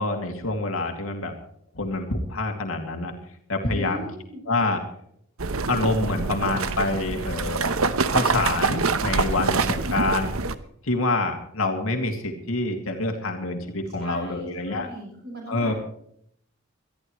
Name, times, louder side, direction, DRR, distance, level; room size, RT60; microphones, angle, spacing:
voice 1, 0.0-1.3 1.7-3.1 3.5-4.0 4.5-4.8 5.7-7.7 8.1-10.3 10.8-14.9 15.5-15.7, left 2 dB, 75° left, 4 dB, 2.5 m, -26 dB
voice 2, 3.6-4.4 14.0-15.8, right 1 dB, 50° right, -2 dB, 6.1 m, -38 dB
sound 1, 5.4-10.5, right 4 dB, 80° right, 1.0 m, -25 dB
23.0 x 14.0 x 3.2 m, 0.69 s
head